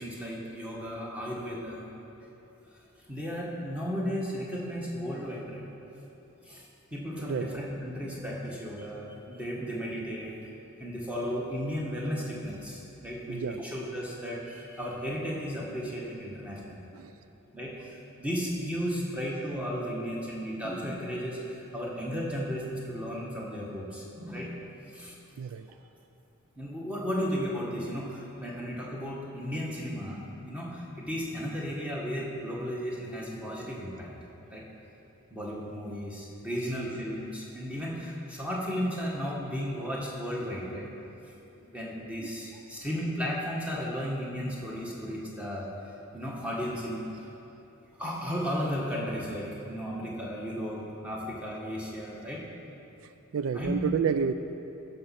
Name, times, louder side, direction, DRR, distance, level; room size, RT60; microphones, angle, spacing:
voice 1, 0.0-1.9 3.1-5.7 6.4-10.3 10.8-16.9 17.5-24.7 24.9-25.1 26.6-34.1 34.5-34.6 35.3-40.9 41.2-41.3 41.7-45.7 46.1-47.3 48.0-52.4 53.5-53.7, equal, 5° right, -4 dB, 1.4 m, -34 dB
voice 2, 13.3-13.6 16.9-17.1 25.4-25.7 42.2-42.3 53.3-54.3, right 6 dB, 75° right, 11 dB, 0.3 m, -30 dB
14.5 x 5.2 x 5.8 m, 3.0 s
head